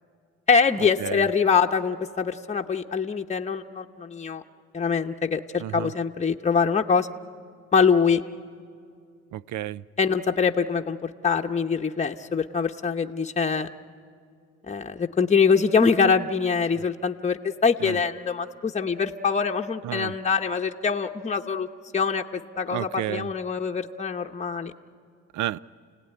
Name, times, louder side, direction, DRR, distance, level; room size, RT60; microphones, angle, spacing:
voice 1, 0.5-4.4 4.7-7.1 7.7-8.2 10.0-13.7 14.7-21.7 21.9-24.7, left 5 dB, 20° left, 3 dB, 0.9 m, -24 dB
voice 2, 5.6-5.9 9.3-9.8 17.8-18.0 19.8-20.1 22.7-23.3 25.3-25.6, right 13 dB, 75° right, 19 dB, 0.5 m, -31 dB
29.5 x 17.5 x 9.9 m, 2.3 s
cardioid pair, 90°, 30 cm